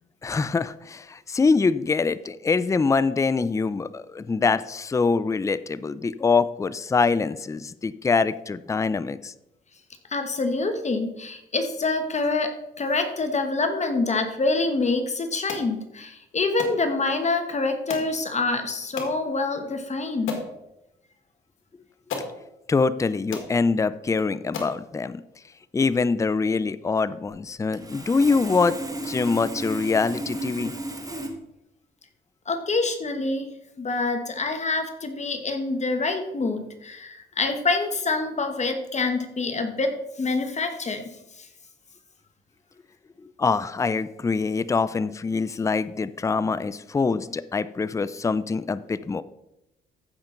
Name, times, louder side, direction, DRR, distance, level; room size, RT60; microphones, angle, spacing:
voice 1, 0.2-9.3 22.7-25.2 25.7-28.8 29.1-30.7 43.4-49.2, left 4 dB, 15° left, 16 dB, 0.4 m, -24 dB
voice 2, 10.1-12.5 12.8-20.3 32.5-33.5 33.8-41.0 41.4-41.5, left 3 dB, 35° left, 6 dB, 1.3 m, -26 dB
sound 1, 15.5-15.7 16.6-16.8 17.9-18.1 19.0-19.2 19.8-19.9 20.3-20.5 21.6-21.7 22.1-22.3 23.0-23.1 23.3-23.5 24.1-24.2 24.5-24.8, left 5 dB, 85° left, 1.8 m, -34 dB
Sawing, 27.7-31.3, right 1 dB, 20° right, 1.8 m, -34 dB
14.5 x 5.9 x 3.8 m, 0.88 s
cardioid pair, 90°, 20 cm